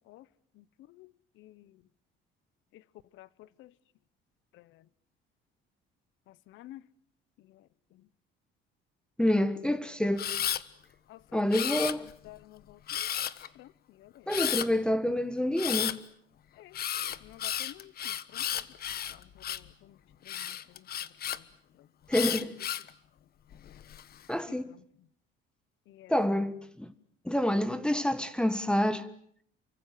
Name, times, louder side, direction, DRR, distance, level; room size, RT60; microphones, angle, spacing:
voice 1, 0.6-1.1 1.4-1.7 3.2-3.7 4.5-4.6 6.5-6.8 11.1-11.4 12.2-13.1 13.6-13.7 14.0-14.3 16.6-16.8 17.2-18.6 19.1-19.9 20.2-20.8 21.3-21.4 24.5-24.6 25.9-26.1, left 15 dB, 70° left, 1.1 m, -52 dB
voice 2, 9.2-10.3 11.3-12.1 14.3-16.0 22.1-22.5 24.3-24.7 26.1-26.9 27.2-29.1, left 1 dB, 5° left, 1.5 m, -28 dB
Camera, 10.2-10.6 11.5-12.3 12.9-13.5 14.3-14.7 15.6-16.0 16.7-19.7 20.3-21.4 22.1-22.9 23.5-24.0, left 10 dB, 45° left, 1.3 m, -33 dB
29.5 x 24.5 x 7.7 m
cardioid pair, 135°, 21 cm